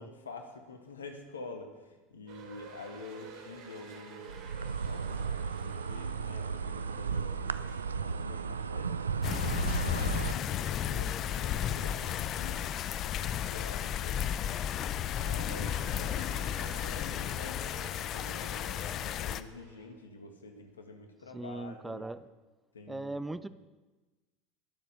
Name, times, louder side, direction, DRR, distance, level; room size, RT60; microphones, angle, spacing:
voice 1, 0.0-12.7 13.0-14.7 15.1-22.0 22.7-23.3, left 3 dB, 80° left, 5 dB, 1.9 m, -48 dB
sound 1, 2.3-19.9, right 5 dB, 60° right, 2.9 m, -52 dB
Insect, 4.3-10.3, right 6 dB, 85° right, 0.4 m, -34 dB
sound 2, 9.2-19.4, left 10 dB, 45° left, 0.6 m, -33 dB
voice 2, 21.3-22.3 22.9-23.5, right 2 dB, 10° right, 14 dB, 0.7 m, -39 dB
21.0 x 7.4 x 6.8 m, 1.2 s
figure-of-eight pair, 75°, 0 cm